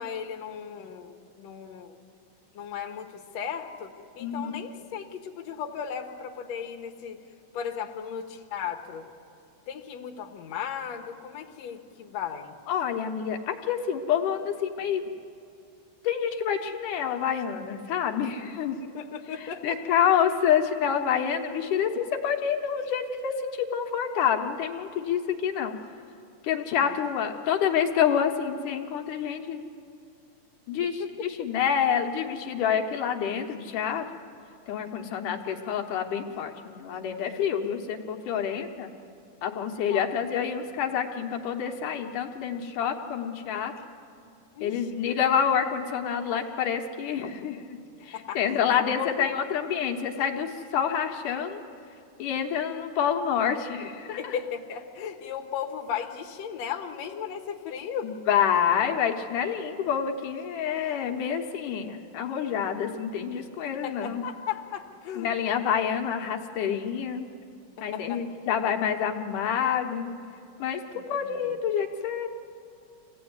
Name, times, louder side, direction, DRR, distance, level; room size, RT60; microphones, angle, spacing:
voice 1, 0.0-1.9 2.5-7.2 7.5-9.1 9.7-12.6 18.8-19.8 26.8-26.9 31.0-31.1 39.9-40.1 44.5-44.9 48.1-49.3 54.0-58.1 63.7-65.3 67.9-68.2 70.9-71.6, left 8 dB, 60° left, 3 dB, 2.3 m, -36 dB
voice 2, 4.2-4.6 12.7-15.0 16.0-18.8 19.6-25.8 26.4-29.6 30.7-34.0 34.7-38.9 39.4-43.7 44.6-47.8 48.0-51.6 52.2-54.3 58.0-64.2 65.2-67.3 67.8-70.1 70.6-72.3, left 8 dB, 75° left, 3 dB, 2.7 m, -27 dB
25.5 x 17.0 x 9.6 m, 2.6 s
omnidirectional pair, 3.7 m